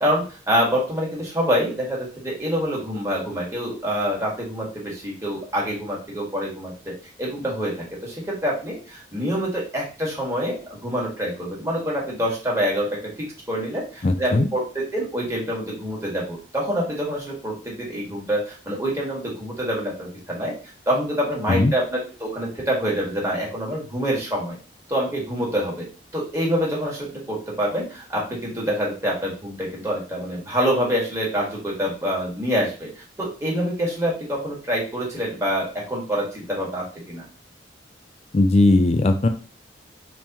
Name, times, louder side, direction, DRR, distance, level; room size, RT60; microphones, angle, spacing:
voice 1, 0.0-20.5 20.9-24.6 24.9-25.8 26.1-37.2, equal, 15° right, -4 dB, 1.6 m, -26 dB
voice 2, 14.0-14.5 21.5-21.7 38.3-39.3, left 2 dB, 35° left, 7 dB, 0.4 m, -18 dB
5.4 x 3.1 x 2.9 m, 0.37 s
head